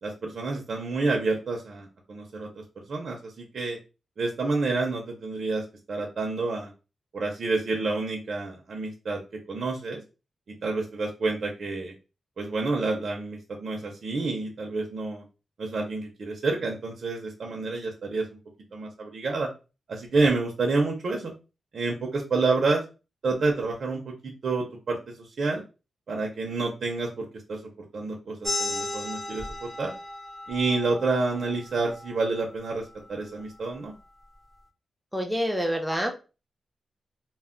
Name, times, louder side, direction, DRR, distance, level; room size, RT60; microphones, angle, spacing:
voice 1, 0.0-2.5 2.9-3.8 4.2-6.7 7.1-9.2 9.5-10.0 10.5-11.9 12.4-15.2 15.6-18.3 18.7-19.5 19.9-21.3 21.7-22.8 23.2-25.6 26.1-29.9 30.5-33.9, right 3 dB, 55° right, 1 dB, 0.5 m, -29 dB
sound 1, 28.4-33.6, left 2 dB, 20° left, 0.8 m, -36 dB
voice 2, 35.1-36.1, equal, 5° right, 1 dB, 0.6 m, -27 dB
2.1 x 2.1 x 3.6 m, 0.31 s
wide cardioid pair, 150°, 0 cm